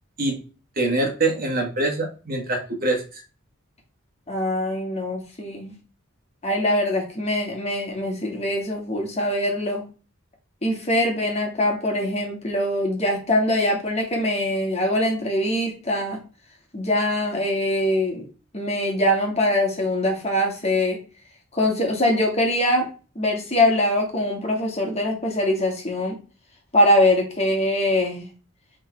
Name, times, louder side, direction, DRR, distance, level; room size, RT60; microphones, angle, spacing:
voice 1, 0.8-3.2, right 2 dB, 40° right, 2 dB, 1.6 m, -24 dB
voice 2, 4.3-5.7 6.4-9.8 10.6-16.2 16.7-18.2 18.5-21.0 21.5-22.9 23.2-26.2 26.7-28.3, left 1 dB, 30° left, 1 dB, 2.1 m, -23 dB
7.6 x 3.8 x 4.6 m, 0.34 s
head